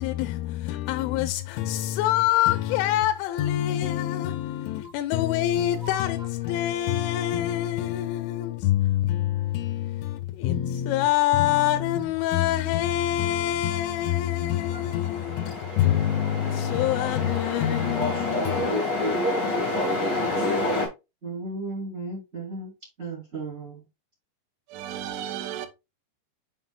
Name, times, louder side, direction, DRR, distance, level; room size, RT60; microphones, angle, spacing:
voice 1, 0.0-18.7, left 13 dB, 85° left, 3.1 m, -25 dB
sound 1, 14.5-20.9, left 1 dB, 35° left, 1.9 m, -28 dB
voice 2, 21.2-22.7 23.0-23.8, right 3 dB, 20° right, 2.0 m, -35 dB
voice 3, 24.7-25.7, right 10 dB, 80° right, 3.4 m, -34 dB
7.2 x 5.8 x 2.3 m
omnidirectional pair, 5.6 m